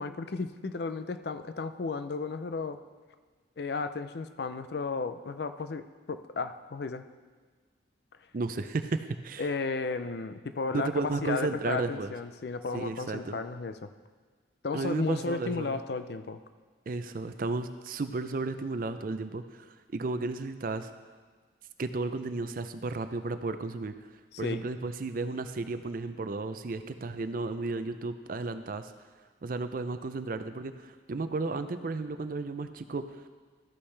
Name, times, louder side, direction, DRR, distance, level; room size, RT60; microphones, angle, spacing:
voice 1, 0.0-2.8 3.6-7.0 9.4-13.9 14.6-16.4 24.4-24.6, left 4 dB, 60° left, 10 dB, 0.5 m, -34 dB
voice 2, 8.3-9.5 10.7-12.1 12.7-13.4 14.7-15.8 16.9-20.9 21.8-24.0 24.4-28.9 29.4-33.3, right 3 dB, 50° right, 10 dB, 0.5 m, -33 dB
13.0 x 8.5 x 3.3 m, 1.4 s
head